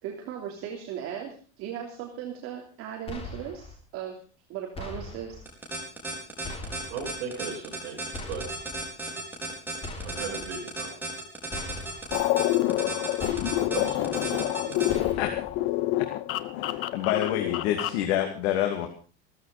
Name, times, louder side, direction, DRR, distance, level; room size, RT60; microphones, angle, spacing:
voice 1, 0.0-4.2 4.5-5.4, right 9 dB, 45° right, 0 dB, 3.1 m, -37 dB
sound 1, 3.1-3.8 4.7-5.4 6.4-7.1 8.1-8.8 9.8-10.5 11.5-12.2 13.2-13.9 14.9-15.6, left 2 dB, 20° left, 3.4 m, -40 dB
sound 2, 5.5-14.9, right 2 dB, 5° right, 4.8 m, -34 dB
voice 2, 6.9-8.4 10.0-11.0 13.6-15.0, right 6 dB, 80° right, -4 dB, 7.9 m, -37 dB
sound 3, 12.1-18.1, left 15 dB, 40° left, 1.1 m, -27 dB
voice 3, 14.9-15.3 16.6-18.9, left 11 dB, 70° left, 4 dB, 2.8 m, -28 dB
16.0 x 15.0 x 5.2 m, 0.36 s
cardioid pair, 170°, 32 cm